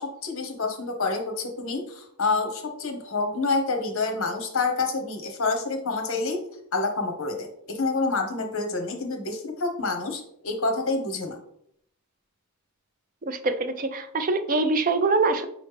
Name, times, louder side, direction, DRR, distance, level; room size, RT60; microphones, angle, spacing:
voice 1, 0.0-6.4 6.7-11.4, left 3 dB, 65° left, 4 dB, 0.9 m, -28 dB
voice 2, 13.3-15.4, right 3 dB, 40° right, 8 dB, 0.4 m, -24 dB
5.0 x 3.1 x 3.3 m, 0.70 s
head